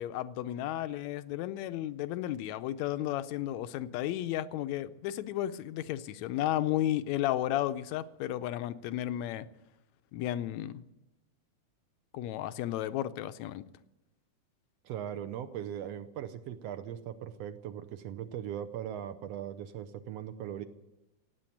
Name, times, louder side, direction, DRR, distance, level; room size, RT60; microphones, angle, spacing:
voice 1, 0.0-9.5 10.1-10.8 12.1-13.6, left 13 dB, 75° left, 12 dB, 1.8 m, -33 dB
voice 2, 14.8-20.7, right 10 dB, 70° right, 11 dB, 1.6 m, -39 dB
16.5 x 9.1 x 8.5 m, 1.0 s
omnidirectional pair, 3.5 m